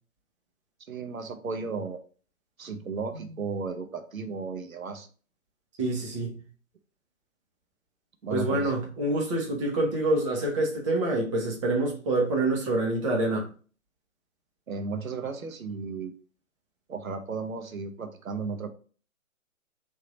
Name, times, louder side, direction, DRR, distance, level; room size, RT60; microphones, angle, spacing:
voice 1, 0.9-2.0 2.6-5.1 8.2-8.7 14.7-16.1 16.9-18.7, right 4 dB, 75° right, 0.9 m, -34 dB
voice 2, 5.8-6.4 8.3-13.5, right 2 dB, 25° right, 1.0 m, -27 dB
3.5 x 2.8 x 4.0 m
figure-of-eight pair, 135°, 41 cm